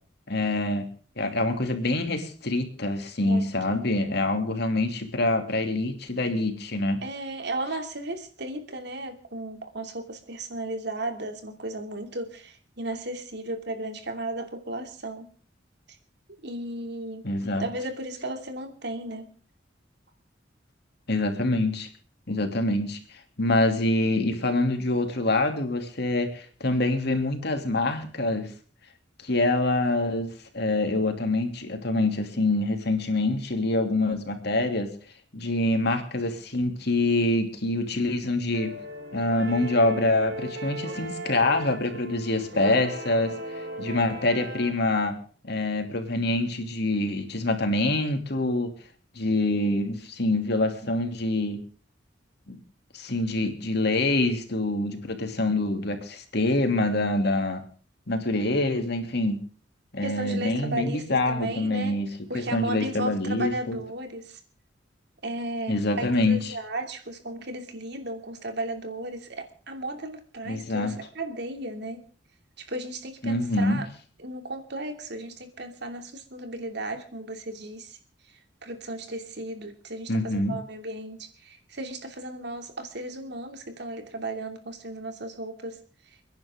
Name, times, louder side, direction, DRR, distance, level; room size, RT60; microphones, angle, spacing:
voice 1, 0.3-0.8 1.2-7.0 17.2-17.7 21.1-21.9 22.3-23.0 23.4-28.5 29.2-30.3 30.5-34.9 35.3-38.7 39.1-45.2 45.4-48.7 49.1-51.6 52.5-52.6 52.9-57.6 58.1-59.4 59.9-62.1 62.3-63.8 65.7-66.5 70.5-70.9 73.2-73.8 80.1-80.6, left 2 dB, 60° left, 5 dB, 2.9 m, -25 dB
voice 2, 3.2-3.8 7.0-15.3 16.4-17.3 17.6-19.3 40.8-40.9 60.0-62.0 62.3-64.4 65.2-72.0 72.6-73.9 74.2-78.0 78.6-85.8, right 1 dB, 60° right, 6 dB, 2.8 m, -35 dB
sound 1, 38.5-44.7, right 1 dB, 80° right, 6.0 m, -37 dB
29.5 x 10.5 x 3.8 m, 0.41 s
head